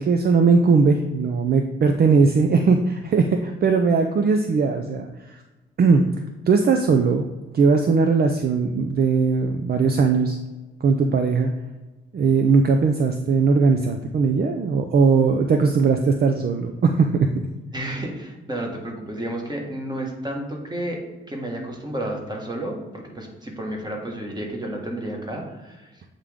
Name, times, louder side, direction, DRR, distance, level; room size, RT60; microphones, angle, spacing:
voice 1, 0.0-5.4 5.8-6.0 6.5-7.3 7.5-10.4 10.8-11.5 12.1-17.3, right 4 dB, 50° right, 6 dB, 0.5 m, -19 dB
voice 2, 17.7-21.0 21.3-25.9, right 1 dB, 20° right, 0 dB, 1.6 m, -31 dB
8.2 x 3.7 x 3.5 m, 1.1 s
cardioid pair, 85°, 21 cm